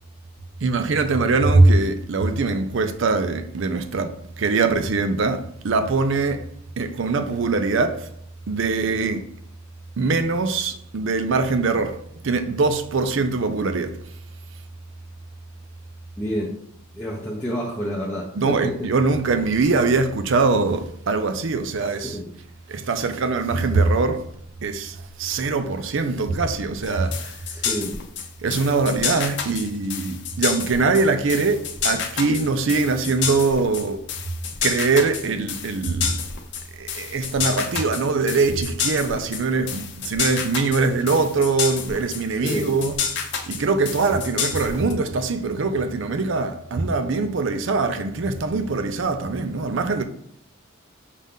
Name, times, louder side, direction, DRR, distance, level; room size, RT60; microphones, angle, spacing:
voice 1, 0.6-6.5 6.8-8.1 8.5-9.3 10.0-12.0 12.2-14.0 18.4-22.2 22.7-24.3 24.6-27.4 28.4-34.0 34.6-36.2 36.7-50.0, right 3 dB, 60° right, 0.5 m, -22 dB
voice 2, 16.2-16.5 16.9-18.9 22.0-22.3 27.5-28.0 42.4-42.7, equal, 5° left, 0.5 m, -28 dB
sound 1, 26.8-44.9, left 7 dB, 50° left, 0.6 m, -29 dB
5.5 x 2.5 x 3.5 m
head